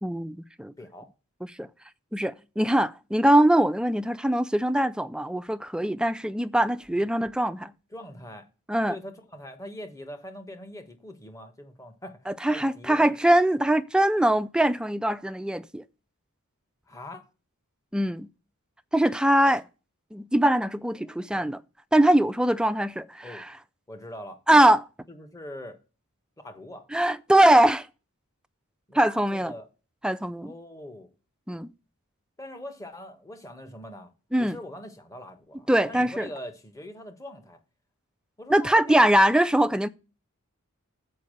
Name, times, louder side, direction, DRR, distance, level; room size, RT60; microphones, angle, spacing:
voice 1, 0.0-0.7 1.4-1.7 2.1-7.7 8.7-9.0 12.3-15.8 17.9-18.3 18.9-19.6 20.1-21.6 21.9-23.2 24.5-24.9 26.9-27.9 28.9-29.5 30.0-30.5 31.5-31.7 34.3-34.6 35.7-36.3 38.5-39.9, right 1 dB, 5° right, 0.3 m, -22 dB
voice 2, 0.8-1.1 7.9-8.5 8.9-12.2 12.5-13.2 16.9-17.3 20.9-21.5 23.2-23.4 23.9-24.4 25.1-25.7 26.4-26.9 28.9-29.7 30.4-31.1 32.4-34.1 34.4-37.6 38.4-39.1, left 1 dB, 15° left, 1.2 m, -42 dB
7.0 x 5.3 x 6.5 m
head